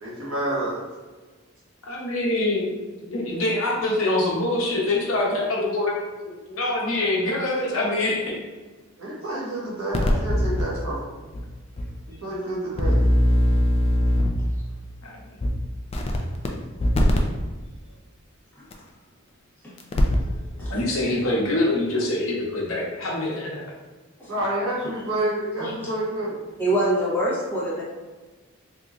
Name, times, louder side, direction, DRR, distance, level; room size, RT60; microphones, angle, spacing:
voice 1, 0.0-0.8 9.0-11.1 12.2-13.0 24.3-26.4, right 1 dB, 85° right, -6 dB, 1.3 m, -28 dB
voice 2, 1.8-2.8 3.1-8.3 9.3-9.4 15.0-15.3 20.7-23.6, left 2 dB, 75° left, -3 dB, 0.9 m, -25 dB
sound 1, 9.9-10.6 11.3-11.4 11.8-11.9 12.8-14.5 15.4-15.5 15.9-16.5 16.8-17.2 18.7-18.8 19.8-20.3 20.6-20.7, left 1 dB, 30° left, 0.3 m, -20 dB
voice 3, 20.3-20.8 24.2-24.3 25.6-25.9 26.6-27.8, right 1 dB, 10° left, -9 dB, 1.1 m, -26 dB
3.5 x 2.9 x 2.5 m, 1.3 s
head